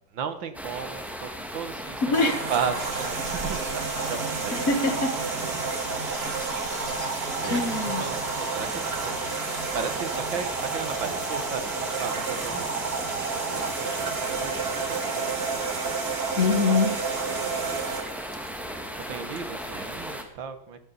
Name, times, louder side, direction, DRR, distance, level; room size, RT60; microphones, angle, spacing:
voice 1, 0.1-4.7 5.1-5.6 7.4-9.3 9.7-15.9 17.2-18.0 18.6-20.8, right 6 dB, 75° right, 2.0 m, -36 dB
sound 1, 0.5-20.2, equal, ahead, 1.5 m, -37 dB
voice 2, 2.0-2.4 4.7-5.2 7.4-8.1 16.4-17.0, left 3 dB, 45° left, 1.9 m, -23 dB
sound 2, 2.1-19.9, right 4 dB, 35° right, 1.4 m, -31 dB
sound 3, 2.5-8.2, equal, 30° left, 3.1 m, -46 dB
15.0 x 13.5 x 4.1 m
omnidirectional pair, 2.1 m